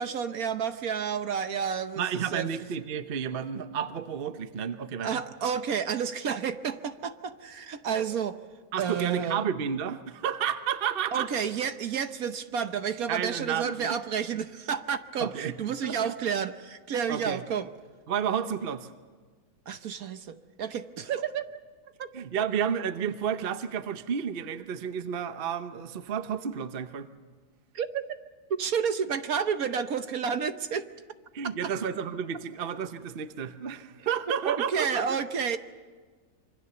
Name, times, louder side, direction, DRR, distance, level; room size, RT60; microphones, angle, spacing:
voice 1, 0.0-2.5 5.0-8.4 8.8-9.4 11.1-17.7 19.7-21.5 22.0-22.1 27.7-28.0 28.5-30.9 34.5-35.6, right 7 dB, 65° right, 10 dB, 1.3 m, -30 dB
voice 2, 2.0-5.2 8.7-11.3 13.1-13.9 14.3-14.4 15.2-15.6 15.8-16.1 17.1-17.4 18.1-18.9 22.1-27.1 31.3-35.2, right 8 dB, 40° right, 10 dB, 0.9 m, -31 dB
26.0 x 24.5 x 6.9 m, 1.4 s
omnidirectional pair, 1.7 m